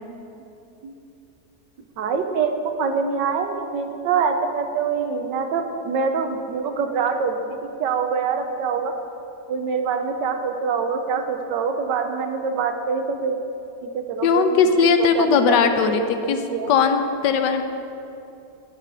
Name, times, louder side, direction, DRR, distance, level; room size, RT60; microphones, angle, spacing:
voice 1, 2.0-8.9 9.5-13.4 13.8-14.5 15.0-16.7, right 5 dB, 85° right, 6 dB, 1.5 m, -25 dB
voice 2, 14.2-16.4 16.7-17.6, left 6 dB, 80° left, 8 dB, 1.3 m, -19 dB
15.0 x 5.1 x 6.1 m, 2.8 s
omnidirectional pair, 1.9 m